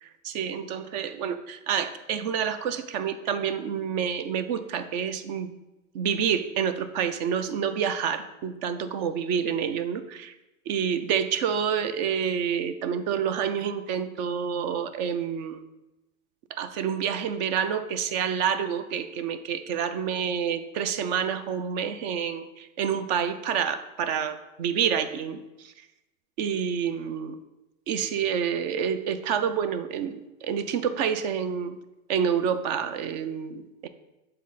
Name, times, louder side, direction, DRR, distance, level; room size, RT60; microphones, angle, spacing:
voice 1, 0.0-5.6 5.9-10.3 10.7-15.6 16.5-25.7 26.4-27.4 27.9-31.8 32.1-33.9, right 7 dB, 35° right, 11 dB, 0.4 m, -28 dB
7.2 x 4.2 x 4.0 m, 1.0 s
hypercardioid pair, 140°, 40 cm